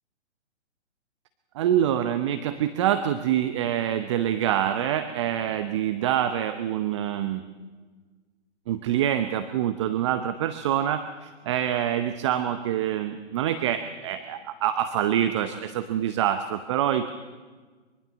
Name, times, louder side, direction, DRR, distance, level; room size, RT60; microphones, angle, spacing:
voice 1, 1.5-7.4 8.7-17.1, right 10 dB, 25° right, 10 dB, 0.7 m, -26 dB
23.5 x 23.5 x 6.3 m, 1.4 s
figure-of-eight pair, 135°, 36 cm